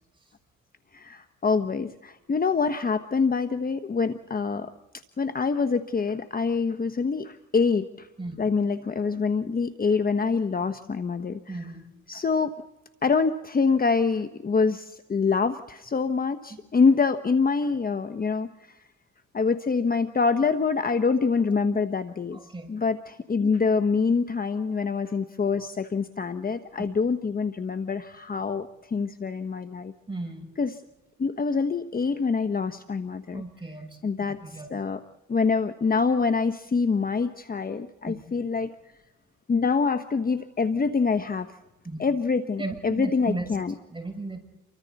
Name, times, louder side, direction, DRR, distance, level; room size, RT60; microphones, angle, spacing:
voice 1, 0.9-4.7 5.2-8.1 8.4-11.6 12.1-12.5 13.0-18.5 19.3-22.4 22.7-29.9 30.6-30.8 31.2-33.4 34.0-35.0 35.3-38.7 39.5-41.5 42.0-43.7, left 5 dB, 30° left, 9 dB, 1.1 m, -25 dB
voice 2, 11.5-11.9 22.3-22.7 26.8-26.9 30.1-30.5 33.3-34.0 34.3-34.7 38.0-38.2 41.8-42.0 42.6-43.5 43.9-44.4, right 2 dB, 15° right, 3 dB, 6.9 m, -35 dB
29.5 x 24.5 x 4.1 m, 0.95 s
cardioid pair, 90°, 30 cm